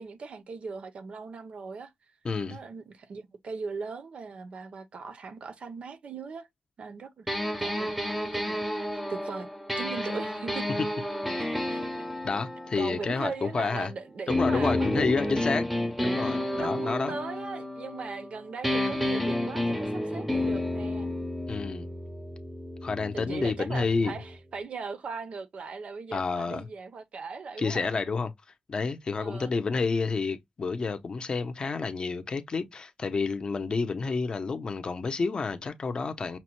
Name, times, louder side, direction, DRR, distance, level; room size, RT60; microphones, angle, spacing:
voice 1, 0.0-1.9 2.5-6.5 6.8-7.3 7.6-7.9 8.2-8.6 8.9-9.5 9.8-10.7 11.7-11.8 12.8-15.6 16.6-21.1 23.1-27.9 29.2-29.5, right 4 dB, 55° right, 0.5 m, -39 dB
voice 2, 2.2-2.6 11.2-11.6 12.2-13.9 14.3-15.7 16.0-17.1 21.5-21.9 22.8-24.1 26.1-26.7 27.6-28.3 28.7-36.4, left 4 dB, 40° left, 0.6 m, -29 dB
sound 1, 7.3-13.8 14.3-18.3 18.6-24.4, left 1 dB, 5° right, 0.6 m, -31 dB
5.8 x 2.1 x 3.0 m
wide cardioid pair, 175°, 2 cm